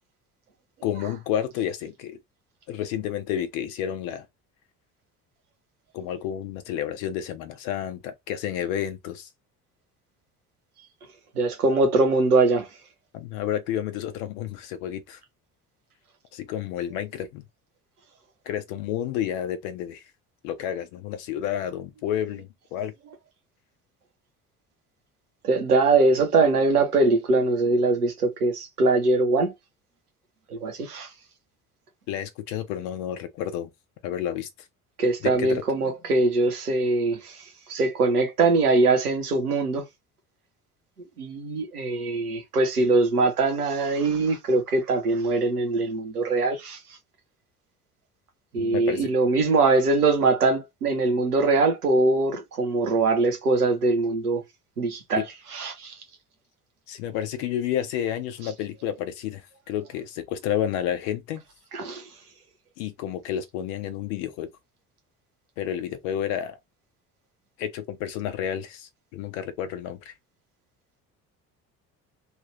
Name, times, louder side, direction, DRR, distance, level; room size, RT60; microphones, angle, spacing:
voice 1, 0.8-2.2 2.7-4.3 5.9-9.3 13.1-15.2 16.3-17.4 18.5-20.0 20.4-22.9 32.1-33.7 34.0-34.5 35.2-35.6 48.6-49.1 55.1-55.2 56.9-61.4 62.8-64.5 65.6-66.6 67.6-70.1, left 10 dB, 60° left, 0.9 m, -30 dB
voice 2, 11.4-12.7 25.4-29.5 30.5-31.1 35.0-37.2 37.7-39.8 41.2-46.8 48.5-54.4 54.8-55.2 55.6-55.7 61.7-62.0, right 3 dB, 80° right, 0.9 m, -22 dB
3.1 x 2.5 x 3.1 m
figure-of-eight pair, 55°, 44 cm